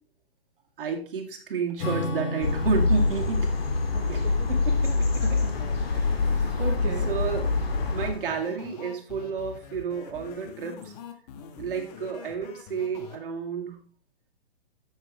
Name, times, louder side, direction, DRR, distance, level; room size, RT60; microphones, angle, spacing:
voice 1, 0.8-3.5 4.1-4.2 4.5-5.4 6.0-6.5 7.1-7.5 7.9-10.9 11.6-13.8, right 6 dB, 60° right, 2 dB, 2.3 m, -31 dB
Acoustic guitar / Strum, 1.8-6.6, left 1 dB, 55° left, 3.4 m, -36 dB
sound 1, 2.4-8.1, left 3 dB, 75° left, 2.4 m, -25 dB
sound 2, 4.7-13.2, left 7 dB, 40° left, 1.5 m, -44 dB
voice 2, 5.2-7.1, right 5 dB, 35° right, -1 dB, 1.7 m, -38 dB
10.0 x 7.5 x 3.1 m, 0.40 s
hypercardioid pair, 140°, 31 cm